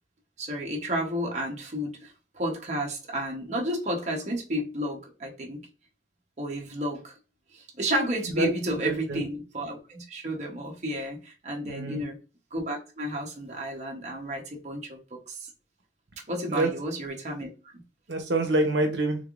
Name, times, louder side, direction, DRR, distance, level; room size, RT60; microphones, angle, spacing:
voice 1, 0.4-5.6 6.4-7.1 7.5-12.2 12.5-15.5 16.3-17.5, equal, 40° right, 0.9 m, -31 dB
voice 2, 8.3-9.2 11.6-12.0 16.5-16.7 18.1-19.2, right 2 dB, 80° right, 0.8 m, -27 dB
3.7 x 3.3 x 2.5 m
head